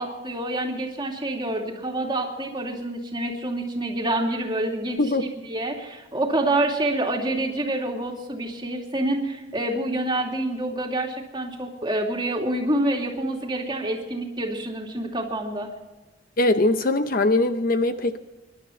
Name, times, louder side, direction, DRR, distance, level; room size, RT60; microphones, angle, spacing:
voice 1, 0.0-5.0 5.4-15.7, right 1 dB, 25° right, 1 dB, 2.6 m, -27 dB
voice 2, 16.4-18.2, left 2 dB, 50° left, 9 dB, 0.8 m, -21 dB
25.5 x 11.5 x 4.4 m, 1.1 s
head